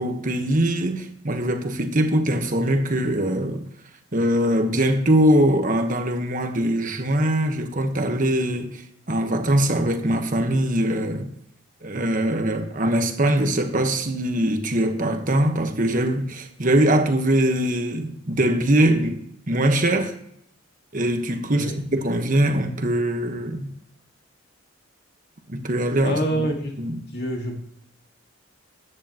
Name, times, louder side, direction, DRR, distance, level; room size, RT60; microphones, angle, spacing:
voice 1, 0.0-3.6 4.1-8.8 9.1-11.3 11.8-19.2 19.5-20.1 20.9-23.7 25.5-26.5 26.8-27.0, right 1 dB, 40° right, 1.3 m, -22 dB
voice 2, 21.4-21.8 26.0-26.8 27.1-27.6, right 1 dB, 50° left, 2.2 m, -27 dB
14.0 x 10.0 x 3.0 m
head